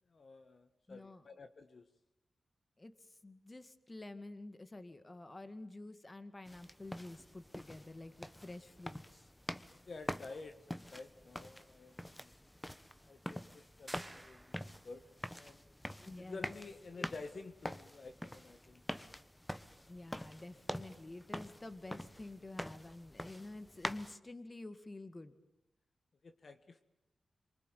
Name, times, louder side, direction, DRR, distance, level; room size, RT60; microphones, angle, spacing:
voice 1, 0.1-1.9 9.8-12.3 13.0-15.1 15.3-15.6 16.2-18.8 26.2-26.8, left 3 dB, 55° left, 9 dB, 1.5 m, -51 dB
voice 2, 0.9-1.2 2.8-2.9 3.2-9.3 16.0-16.5 17.0-17.1 19.9-25.3, left 2 dB, 25° left, 11 dB, 2.0 m, -49 dB
sound 1, 6.5-24.2, left 1 dB, 10° left, 1.1 m, -46 dB
sound 2, 13.9-15.0, right 1 dB, 15° right, 1.8 m, -52 dB
26.5 x 24.0 x 9.2 m, 0.83 s
wide cardioid pair, 90°, 0 cm